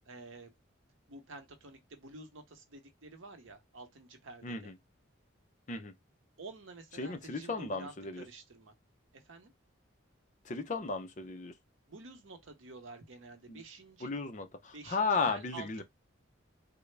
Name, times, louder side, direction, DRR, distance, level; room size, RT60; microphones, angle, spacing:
voice 1, 0.1-0.5 1.1-4.7 6.4-8.7 9.1-9.5 11.9-14.1 14.7-15.8, right 3 dB, 75° right, 0.8 m, -50 dB
voice 2, 4.4-4.7 5.7-5.9 7.0-8.2 10.5-11.5 13.5-13.6 14.0-15.8, left 4 dB, 40° left, 0.5 m, -35 dB
3.6 x 2.0 x 3.2 m
head